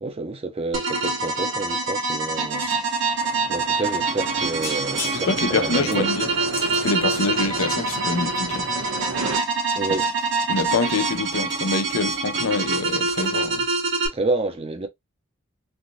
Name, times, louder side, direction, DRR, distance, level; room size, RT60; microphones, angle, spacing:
voice 1, 0.0-2.6 3.1-3.2 3.5-6.1 9.7-10.1 14.1-14.9, right 3 dB, 30° right, 0.6 m, -29 dB
sound 1, 0.7-14.1, right 3 dB, 60° right, 1.0 m, -25 dB
sound 2, 1.8-1.9 2.1-3.0 3.6-3.7 4.1-4.3 4.6-8.2 8.6-12.0 12.3-12.6 12.9-13.0 13.2-13.3, left 2 dB, 10° left, 0.8 m, -38 dB
sound 3, 3.2-9.4, right 3 dB, 85° right, 0.6 m, -34 dB
voice 2, 5.1-6.3 6.7-8.7 10.5-13.7, left 3 dB, 85° left, 0.6 m, -25 dB
3.3 x 2.6 x 2.6 m
head